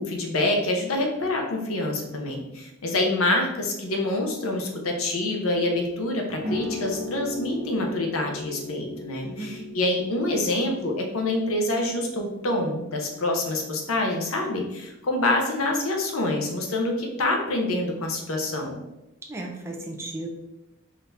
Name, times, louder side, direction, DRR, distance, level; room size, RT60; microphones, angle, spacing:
voice 1, 0.0-18.8, left 2 dB, 85° left, 2 dB, 0.8 m, -26 dB
sound 1, 6.4-13.6, left 1 dB, 35° right, 0.9 m, -38 dB
voice 2, 9.2-9.6 19.3-20.3, right 2 dB, 10° right, 0 dB, 0.4 m, -35 dB
3.9 x 2.7 x 3.4 m, 0.93 s
head